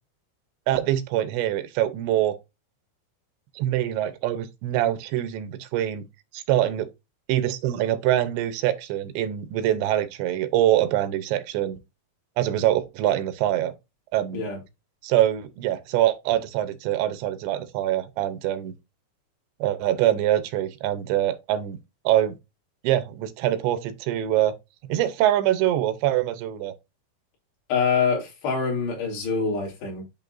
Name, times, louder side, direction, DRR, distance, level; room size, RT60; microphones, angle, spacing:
voice 1, 0.7-2.4 3.6-6.0 6.3-6.9 7.3-11.8 12.4-13.7 14.1-14.4 15.0-18.7 19.6-21.8 22.0-22.4 22.8-24.5 24.9-26.7, right 12 dB, 80° right, 3.0 m, -24 dB
voice 2, 27.7-30.0, left 5 dB, 65° left, 4.6 m, -25 dB
10.5 x 3.7 x 2.6 m
omnidirectional pair, 5.2 m